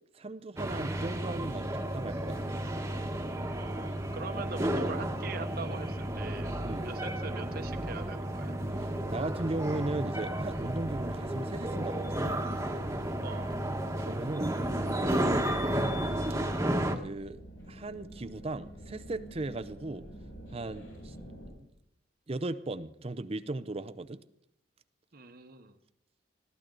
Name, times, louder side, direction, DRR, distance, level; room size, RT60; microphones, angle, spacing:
voice 1, 0.1-2.6 6.6-6.9 9.1-12.4 14.0-14.5 15.0-15.4 17.0-17.4 17.7-20.0 20.5-21.2 21.6-21.7 22.3-24.2, right 2 dB, 30° right, 13 dB, 0.5 m, -37 dB
sound 1, 0.6-17.0, right 1 dB, 15° right, 1.2 m, -32 dB
voice 2, 3.6-6.5 6.8-8.6 13.2-13.6 25.1-25.8, right 4 dB, 50° right, 7 dB, 1.0 m, -42 dB
sound 2, 6.6-21.5, right 1 dB, 80° left, 7.2 m, -51 dB
21.0 x 15.0 x 3.9 m, 0.73 s
head